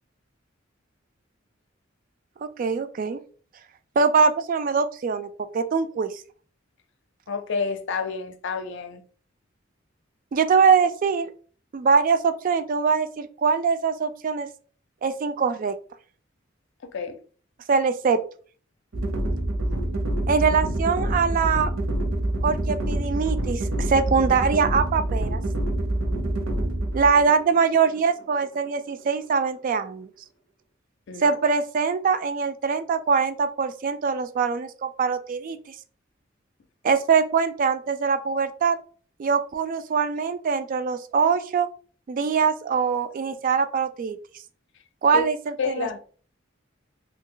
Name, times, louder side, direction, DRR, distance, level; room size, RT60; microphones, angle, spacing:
voice 1, 2.4-3.2 4.0-6.1 10.3-11.3 11.7-14.5 15.0-15.8 17.7-18.2 20.3-21.7 22.4-25.4 26.9-30.1 31.2-35.6 36.8-38.8 39.2-41.7 42.1-44.2 45.0-45.9, right 5 dB, 45° right, 0.3 m, -23 dB
voice 2, 7.3-9.0 16.8-17.2 31.1-31.4 45.1-45.3 45.6-46.0, left 5 dB, 65° left, 0.5 m, -29 dB
sound 1, 18.9-29.0, right 1 dB, 75° right, 0.7 m, -27 dB
2.7 x 2.3 x 3.7 m
head